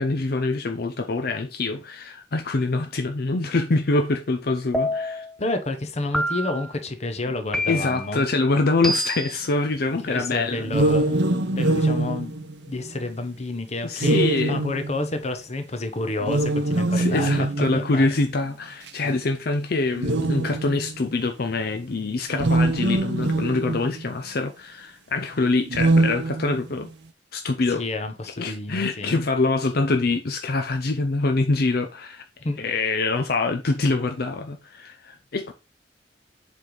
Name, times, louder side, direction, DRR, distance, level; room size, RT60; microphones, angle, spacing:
voice 1, 0.0-5.3 7.3-7.4 7.7-10.7 13.8-14.6 16.9-26.9 27.3-27.8 28.4-32.2 32.6-35.5, left 3 dB, 60° left, 0.6 m, -25 dB
sound 1, 4.7-5.3 6.1-6.7 7.5-8.1 8.8-9.4, equal, ahead, 0.5 m, -27 dB
voice 2, 5.4-8.3 10.0-18.1 19.0-19.2 27.8-29.2 32.4-32.6, left 2 dB, 40° left, 1.0 m, -30 dB
sound 2, 10.6-13.1 14.0-15.2 16.2-18.0 18.9-19.0 19.9-21.0 22.3-24.1 25.6-26.9, right 2 dB, 70° right, 0.7 m, -23 dB
7.4 x 3.5 x 3.9 m
head